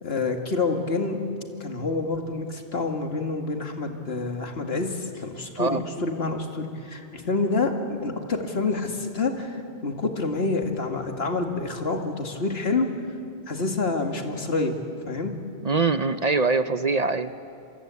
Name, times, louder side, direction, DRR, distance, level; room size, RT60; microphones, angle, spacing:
voice 1, 0.0-1.2 1.6-12.9 13.5-14.8 15.1-15.3, left 3 dB, 70° left, 4 dB, 2.3 m, -27 dB
voice 2, 15.6-17.3, right 3 dB, 45° right, 11 dB, 0.7 m, -23 dB
27.5 x 23.5 x 8.4 m, 2.5 s
omnidirectional pair, 1.1 m